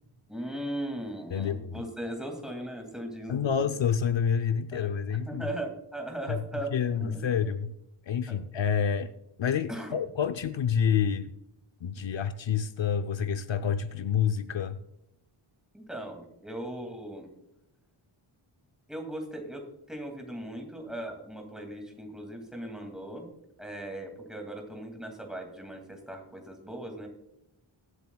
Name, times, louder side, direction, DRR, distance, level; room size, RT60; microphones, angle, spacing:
voice 1, 0.3-3.7 4.7-4.9 5.2-7.2 8.3-8.4 9.7-9.9 12.0-12.1 15.7-17.3 18.9-23.3 23.6-27.1, right 1 dB, ahead, 3 dB, 2.3 m, -38 dB
voice 2, 1.3-1.8 3.3-5.5 6.3-6.4 6.7-7.7 8.1-9.1 9.4-11.3 11.8-14.8, left 7 dB, 65° left, 8 dB, 0.6 m, -28 dB
22.5 x 8.1 x 2.3 m, 0.81 s
wide cardioid pair, 135°, 49 cm